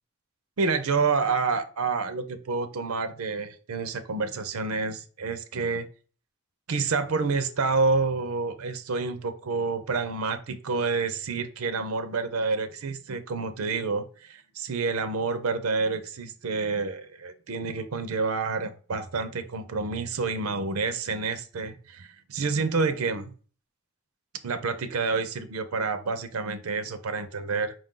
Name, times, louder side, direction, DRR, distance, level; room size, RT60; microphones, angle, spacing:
voice 1, 0.6-5.9 6.7-23.3 24.4-27.7, right 4 dB, 85° right, 0.6 m, -28 dB
5.0 x 2.6 x 3.7 m
head